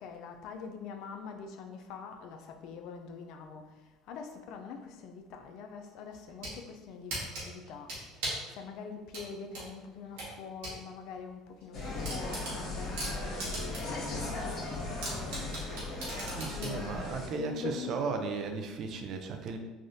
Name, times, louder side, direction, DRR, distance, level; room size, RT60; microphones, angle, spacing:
voice 1, 0.0-18.1, left 5 dB, 70° left, 5 dB, 0.4 m, -44 dB
sound 1, 6.1-6.6 7.1-8.5 9.1-10.8 11.1-11.2 11.6-11.7 12.0-14.0 14.4-14.5 15.0-16.8, right 1 dB, 80° right, 1.1 m, -38 dB
Insect, 11.7-17.3, left 2 dB, 50° left, 1.1 m, -37 dB
voice 2, 16.2-19.6, right 4 dB, 55° right, 5 dB, 0.4 m, -36 dB
3.4 x 2.4 x 2.6 m, 1.2 s
supercardioid pair, 80°, 0 cm